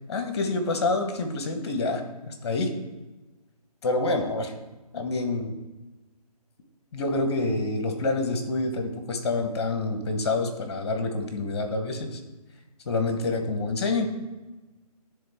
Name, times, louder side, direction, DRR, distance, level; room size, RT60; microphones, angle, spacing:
voice 1, 0.1-2.0 2.3-2.7 3.8-4.5 4.9-5.5 6.9-12.2 12.9-14.1, left 2 dB, 40° left, 6 dB, 1.1 m, -27 dB
10.0 x 3.8 x 3.5 m, 1.1 s
hypercardioid pair, 160°, 20 cm